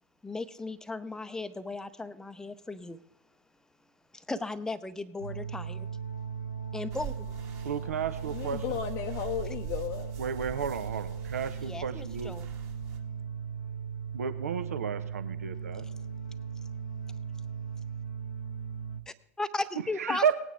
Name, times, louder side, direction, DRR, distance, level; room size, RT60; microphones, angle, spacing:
voice 1, 0.2-3.0 4.1-5.9 6.7-7.3 11.6-12.5 19.1-20.3, left 3 dB, 5° left, 13 dB, 0.6 m, -36 dB
sound 1, 5.2-19.0, right 6 dB, 85° left, 0.8 m, -38 dB
sound 2, 6.9-13.0, right 9 dB, 35° right, 1.7 m, -45 dB
voice 2, 7.6-8.8 10.2-12.3 14.1-15.8 20.0-20.3, right 7 dB, 70° right, 10 dB, 0.7 m, -32 dB
voice 3, 8.3-10.1 20.1-20.3, left 10 dB, 45° left, 3 dB, 0.7 m, -35 dB
19.0 x 9.1 x 3.5 m, 0.79 s
figure-of-eight pair, 85°, 8 cm